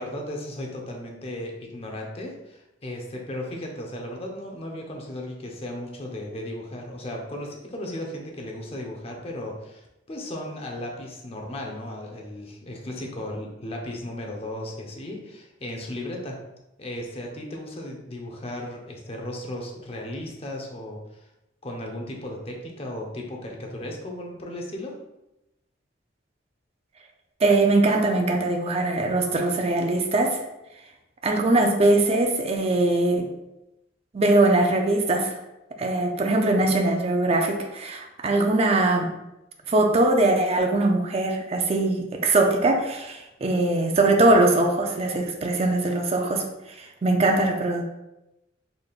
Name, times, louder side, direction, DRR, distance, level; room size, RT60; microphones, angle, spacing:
voice 1, 0.0-16.4 16.8-21.3 21.6-25.0, left 1 dB, 30° left, 1 dB, 0.6 m, -35 dB
voice 2, 27.4-30.4 31.2-33.3 34.1-35.4 35.8-39.1 39.7-46.4 46.8-47.8, right 2 dB, 30° right, 3 dB, 0.4 m, -21 dB
4.1 x 3.4 x 2.4 m, 0.93 s
head